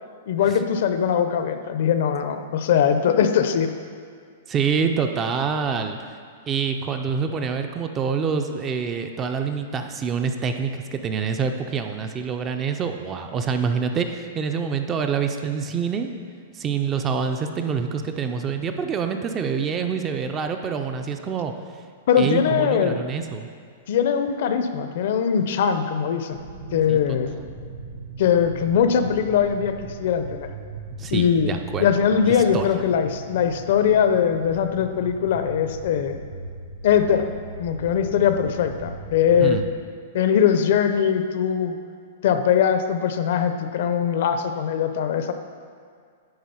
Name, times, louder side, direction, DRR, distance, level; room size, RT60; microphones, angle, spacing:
voice 1, 0.3-3.7 22.1-23.0 23.9-26.4 26.7-27.3 28.2-30.5 31.1-36.2 36.8-37.3 37.6-39.6 40.1-41.8 42.2-45.3, left 8 dB, 55° left, 8 dB, 0.5 m, -21 dB
voice 2, 4.5-6.0 6.5-16.1 16.5-21.5 22.2-23.5 26.9-27.0 31.0-31.8 32.5-32.7 39.4-39.6, right 6 dB, 20° right, 6 dB, 0.4 m, -26 dB
sound 1, 26.3-39.7, right 2 dB, 90° right, 1.8 m, -38 dB
9.6 x 3.7 x 5.6 m, 2.1 s
hypercardioid pair, 165°, 0 cm